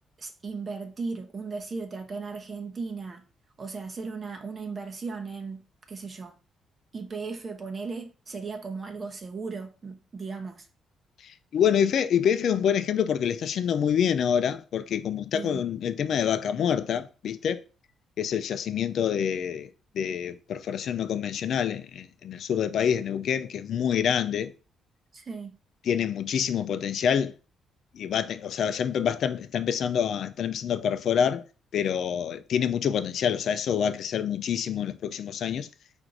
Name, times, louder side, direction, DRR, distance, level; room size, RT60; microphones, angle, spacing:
voice 1, 0.2-3.2 3.6-6.3 6.9-10.7 15.3-15.6 25.1-25.6, right 4 dB, 40° right, 0.8 m, -36 dB
voice 2, 11.2-17.6 18.2-19.7 19.9-24.5 25.9-27.3 27.9-31.4 31.7-35.7, left 8 dB, 65° left, 0.4 m, -26 dB
4.5 x 2.6 x 3.8 m
cardioid pair, 90°, 0 cm